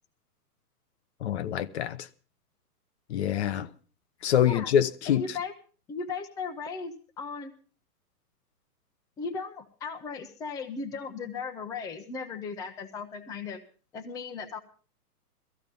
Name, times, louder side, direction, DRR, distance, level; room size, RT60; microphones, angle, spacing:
voice 1, 1.2-2.1 3.1-3.7 4.2-5.3, left 10 dB, 45° left, 0.8 m, -25 dB
voice 2, 5.1-5.5 5.9-7.5 9.2-13.6 13.9-14.6, left 5 dB, 10° left, 0.7 m, -36 dB
17.5 x 14.5 x 5.3 m
hypercardioid pair, 150°, 48 cm